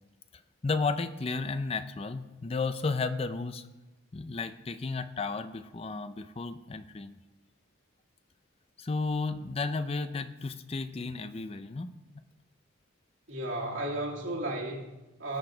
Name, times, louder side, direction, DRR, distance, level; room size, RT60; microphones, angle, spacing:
voice 1, 0.6-3.7 4.1-7.2 8.8-11.9, left 3 dB, 30° left, 11 dB, 0.5 m, -33 dB
voice 2, 13.3-15.4, right 1 dB, 85° right, -3 dB, 2.8 m, -34 dB
18.5 x 6.9 x 3.9 m, 1.1 s
head